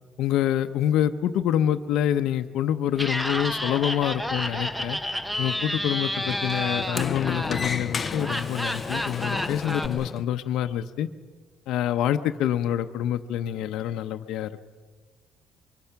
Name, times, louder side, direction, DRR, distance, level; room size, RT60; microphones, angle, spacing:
voice 1, 0.2-5.0 5.4-11.1 11.7-14.6, left 10 dB, 70° left, 7 dB, 0.8 m, -26 dB
sound 1, 2.3-2.5 3.3-3.6 4.4-4.8 5.6-5.8 7.0-7.3 8.1-8.4 9.2-9.4, right 1 dB, 55° right, 6.9 m, -54 dB
Laughter, 2.9-9.9, left 1 dB, ahead, 0.9 m, -30 dB
Sliding door, 3.4-10.2, left 5 dB, 25° left, 0.6 m, -35 dB
24.0 x 23.5 x 5.9 m, 1.4 s
cardioid pair, 155°, 0 cm